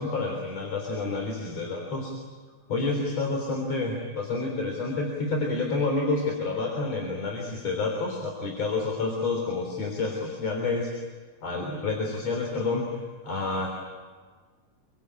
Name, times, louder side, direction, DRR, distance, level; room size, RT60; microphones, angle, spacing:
voice 1, 0.0-2.1 2.7-10.9 11.4-12.9 13.2-13.7, left 3 dB, 55° left, 1 dB, 4.7 m, -29 dB
27.0 x 24.0 x 8.9 m, 1.5 s
omnidirectional pair, 3.6 m